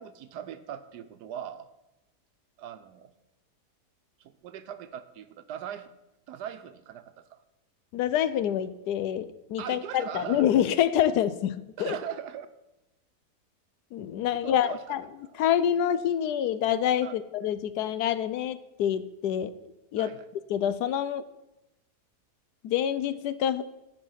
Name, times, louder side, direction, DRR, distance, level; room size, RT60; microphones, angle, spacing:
voice 1, 0.0-1.7 2.6-3.1 4.2-5.9 6.3-7.4 9.6-10.5 11.8-12.5 14.3-14.9 15.2-15.3 17.0-17.2 20.0-20.3, right 9 dB, 85° right, 11 dB, 1.3 m, -40 dB
voice 2, 7.9-11.9 13.9-15.0 15.4-19.5 19.9-20.1 20.5-21.2 22.6-23.6, left 10 dB, 80° left, 14 dB, 1.2 m, -27 dB
14.0 x 5.1 x 5.7 m, 0.94 s
omnidirectional pair, 1.7 m